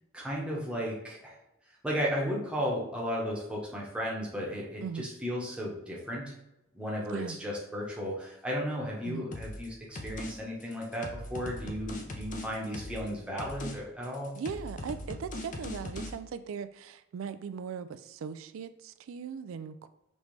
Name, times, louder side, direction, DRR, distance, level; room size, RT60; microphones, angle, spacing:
voice 1, 0.1-1.4 1.8-6.3 6.7-14.3, equal, 5° right, -4 dB, 0.9 m, -34 dB
sound 1, 9.3-9.7 10.0-10.3 10.6-13.1 13.4-13.8 14.0-16.1, left 1 dB, 40° left, 0.6 m, -40 dB
voice 2, 14.4-19.9, right 6 dB, 80° right, 12 dB, 0.3 m, -39 dB
5.2 x 3.2 x 3.2 m, 0.89 s
head